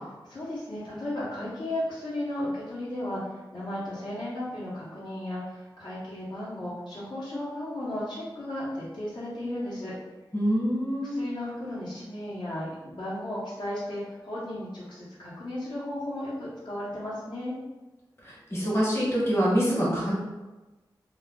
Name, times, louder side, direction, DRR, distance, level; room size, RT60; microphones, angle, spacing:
voice 1, 0.3-3.2 3.5-9.9 11.0-17.5, left 1 dB, 65° left, -9 dB, 0.9 m, -35 dB
voice 2, 10.3-11.1 18.2-20.1, equal, 30° left, -6 dB, 1.2 m, -25 dB
2.3 x 2.3 x 3.6 m, 1.1 s
wide cardioid pair, 85°, 8 cm